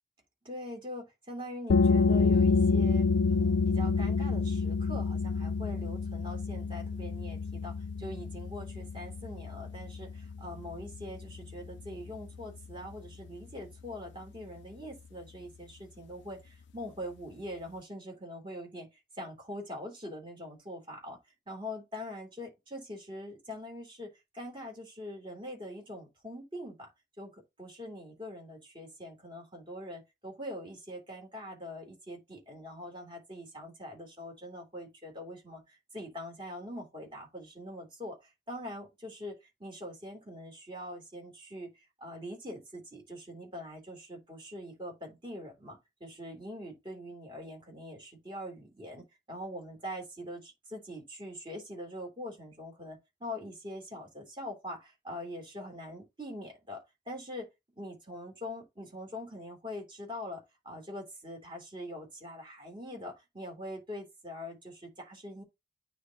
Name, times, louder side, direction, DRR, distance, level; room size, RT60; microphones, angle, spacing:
voice 1, 0.4-18.9 19.1-21.2 21.5-26.9 27.2-38.2 38.5-57.5 57.7-65.4, left 1 dB, 25° right, 3.2 m, -43 dB
sound 1, 1.7-13.1, left 4 dB, 60° left, 0.4 m, -29 dB
9.3 x 3.1 x 4.0 m
head